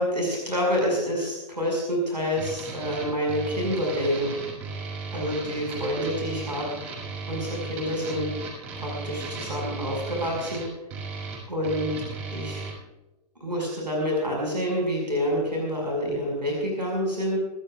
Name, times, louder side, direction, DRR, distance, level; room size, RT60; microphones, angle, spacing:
voice 1, 0.0-4.4 5.1-6.7 7.3-8.3 8.8-10.7 11.5-11.9 12.3-12.7 13.4-17.4, equal, 90° right, -1 dB, 5.7 m, -27 dB
sound 1, 2.4-12.7, right 4 dB, 30° right, 6.8 m, -36 dB
25.0 x 15.5 x 2.4 m, 1.0 s
figure-of-eight pair, 115°, 21 cm